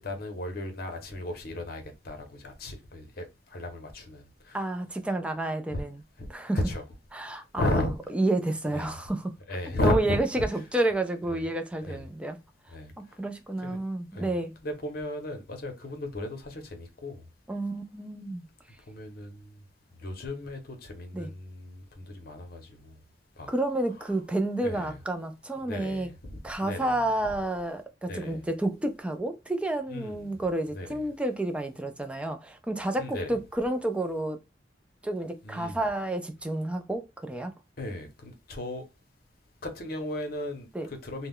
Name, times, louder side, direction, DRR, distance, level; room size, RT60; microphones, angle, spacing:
voice 1, 0.0-3.3 3.5-4.6 6.7-6.8 7.6-7.9 8.7-8.9 9.5-10.2 11.9-12.0 12.7-12.9 13.6-13.8 14.2-14.4 14.6-17.2 18.9-19.4 20.0-22.9 23.4-23.5 24.6-24.9 25.7-26.3 26.6-26.9 28.1-28.4 29.9-30.2 30.7-30.9 33.0-33.3 35.4-35.8 37.8-38.8 39.6-40.7 41.0-41.3, left 1 dB, 55° left, 0.7 m, -34 dB
voice 2, 4.5-6.0 6.3-6.6 7.1-9.3 9.8-12.4 13.2-14.5 17.5-18.4 21.1-21.3 23.5-26.1 26.4-34.4 35.0-37.5 40.7-40.9, right 1 dB, 5° right, 0.3 m, -30 dB
2.3 x 2.1 x 3.5 m
head